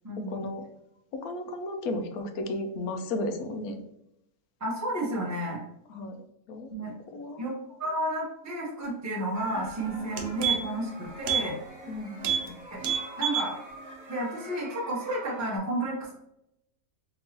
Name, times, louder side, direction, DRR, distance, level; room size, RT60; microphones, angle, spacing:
voice 1, 0.3-0.6 1.1-3.8 5.9-6.2 6.5-7.5 11.9-12.6, left 2 dB, 70° left, 6 dB, 1.0 m, -34 dB
voice 2, 4.6-5.6 6.7-6.9 7.4-11.6 12.7-12.8 13.2-13.6 14.1-16.1, right 1 dB, 15° right, -4 dB, 0.7 m, -31 dB
sound 1, 9.3-15.6, right 1 dB, 40° right, 1.3 m, -46 dB
sound 2, 9.6-9.7 10.0-10.9 11.2-11.5 11.8-11.9 12.2-12.5 12.8-13.5 13.9-14.0, right 7 dB, 80° right, 1.2 m, -28 dB
3.8 x 2.9 x 2.8 m, 0.81 s
omnidirectional pair, 1.7 m